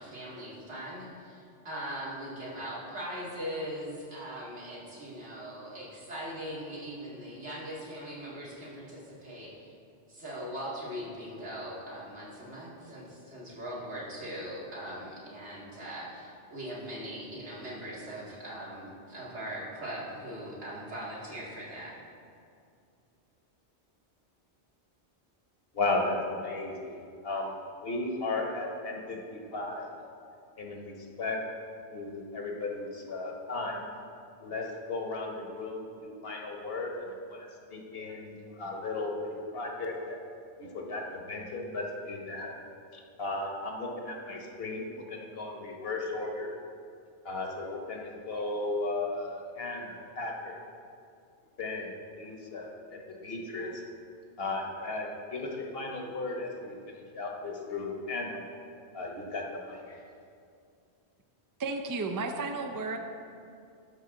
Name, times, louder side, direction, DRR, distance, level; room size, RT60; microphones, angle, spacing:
voice 1, 0.0-9.7 10.1-21.9, equal, 85° right, -7 dB, 2.5 m, -40 dB
voice 2, 25.7-27.6 27.8-29.9 30.6-31.4 31.9-33.9 34.4-40.2 40.6-42.6 42.9-46.5 47.2-50.6 51.6-51.9 52.2-53.8 54.4-58.4 58.9-60.0, left 2 dB, 60° left, 1 dB, 1.3 m, -35 dB
voice 3, 61.6-63.0, right 3 dB, 30° right, 5 dB, 0.3 m, -33 dB
12.5 x 6.2 x 3.7 m, 2.4 s
omnidirectional pair, 1.1 m